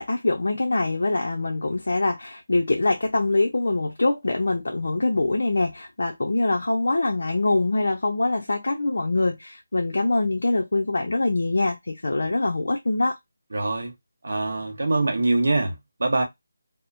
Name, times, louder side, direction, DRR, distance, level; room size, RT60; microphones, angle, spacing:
voice 1, 0.0-13.2, left 2 dB, 70° left, 0.5 m, -24 dB
voice 2, 13.5-13.9 14.2-16.2, right 2 dB, 60° right, 0.9 m, -24 dB
2.9 x 2.0 x 2.5 m
figure-of-eight pair, 175°, 0 cm